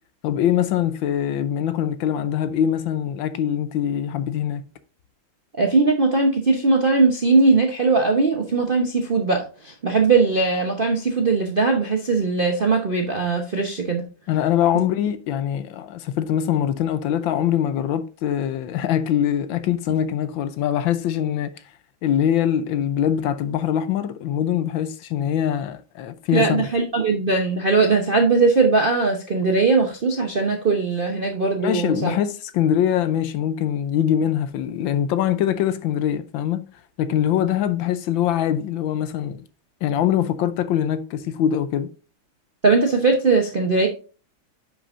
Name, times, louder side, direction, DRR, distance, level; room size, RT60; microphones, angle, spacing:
voice 1, 0.2-4.6 14.3-21.5 22.0-26.7 31.6-36.7 37.0-39.4 39.8-41.9, left 10 dB, 75° left, 1.3 m, -23 dB
voice 2, 5.6-14.0 26.3-32.2 42.6-43.9, right 3 dB, 50° right, 0.6 m, -20 dB
9.7 x 5.9 x 2.5 m
omnidirectional pair, 2.3 m